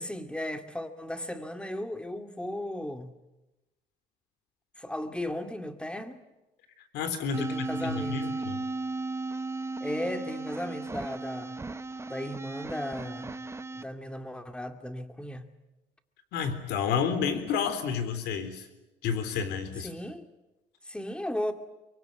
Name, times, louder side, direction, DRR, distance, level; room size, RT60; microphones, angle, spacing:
voice 1, 0.0-3.1 4.8-6.2 7.4-8.3 9.8-11.6 12.1-13.3 13.7-15.5 19.8-20.3 20.9-21.5, left 1 dB, 5° left, 2.3 m, -36 dB
voice 2, 6.9-8.6 16.3-18.7 19.0-19.9, left 7 dB, 80° left, 3.6 m, -30 dB
sound 1, 7.3-13.8, right 3 dB, 15° right, 1.0 m, -35 dB
24.0 x 23.5 x 9.3 m
cardioid pair, 110°, 17 cm